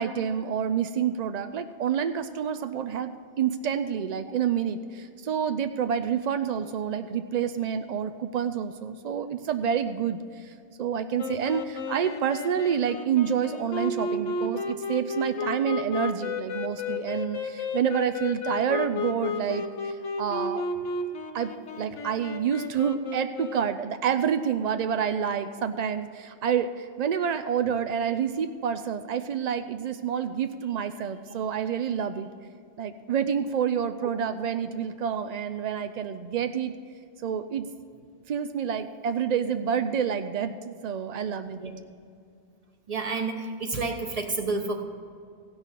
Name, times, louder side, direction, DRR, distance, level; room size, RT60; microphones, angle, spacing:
voice 1, 0.0-10.5 10.8-20.7 21.3-32.3 32.8-36.7 37.2-37.7 38.3-41.6, right 8 dB, 65° right, 9 dB, 0.4 m, -28 dB
sound 1, 11.2-23.8, left 3 dB, 85° left, 1.2 m, -33 dB
voice 2, 42.9-44.9, right 3 dB, 35° right, 5 dB, 1.1 m, -30 dB
16.0 x 6.3 x 7.3 m, 2.3 s
omnidirectional pair, 1.2 m